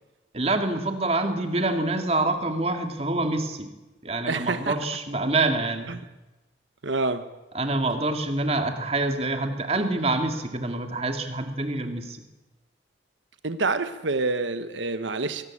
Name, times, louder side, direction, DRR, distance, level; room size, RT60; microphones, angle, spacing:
voice 1, 0.3-3.7 4.0-6.0 7.5-12.2, right 2 dB, 35° right, 2.3 m, -26 dB
voice 2, 4.3-4.8 5.9-6.0 6.8-7.2 13.4-15.4, right 3 dB, 80° right, 1.1 m, -27 dB
24.0 x 18.0 x 8.6 m
head